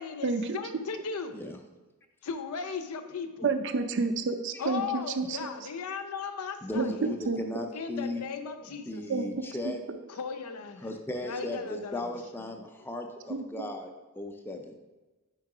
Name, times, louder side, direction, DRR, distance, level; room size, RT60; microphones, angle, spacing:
voice 1, 0.0-1.4 2.2-3.5 4.6-7.1 7.7-9.0 10.1-12.7 13.2-13.4, left 5 dB, 90° left, 7 dB, 0.5 m, -37 dB
voice 2, 3.4-5.4 6.8-7.4 9.1-9.3 9.7-9.8 13.3-13.7, right 4 dB, 55° right, 8 dB, 0.4 m, -29 dB
voice 3, 6.6-8.2 8.9-9.8 10.8-13.9 14.2-14.8, left 1 dB, 10° left, 4 dB, 0.4 m, -37 dB
4.8 x 4.5 x 4.8 m, 1.2 s
head